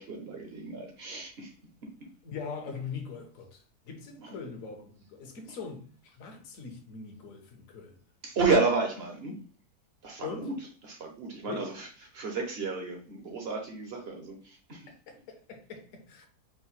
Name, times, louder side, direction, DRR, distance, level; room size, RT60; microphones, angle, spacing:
voice 1, 0.0-1.5 4.2-4.4 8.2-9.4 10.0-10.5 10.8-11.9 12.1-14.8, right 4 dB, 45° right, 0.9 m, -31 dB
voice 2, 2.2-8.0 10.2-10.5 11.5-11.8 14.9-16.3, left 5 dB, 60° left, 1.3 m, -41 dB
4.8 x 2.2 x 4.3 m
omnidirectional pair, 1.7 m